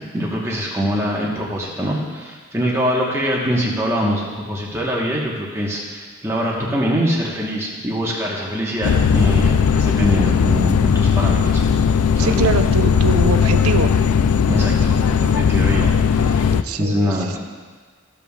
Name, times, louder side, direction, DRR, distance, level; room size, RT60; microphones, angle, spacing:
voice 1, 0.1-11.6 12.1-12.5 14.5-17.4, equal, 10° right, -4 dB, 1.2 m, -24 dB
sound 1, 8.8-16.6, left 6 dB, 85° left, 0.3 m, -17 dB
voice 2, 12.2-14.0 16.5-17.3, right 4 dB, 85° right, 7 dB, 0.6 m, -23 dB
14.5 x 7.0 x 2.4 m, 1.4 s
head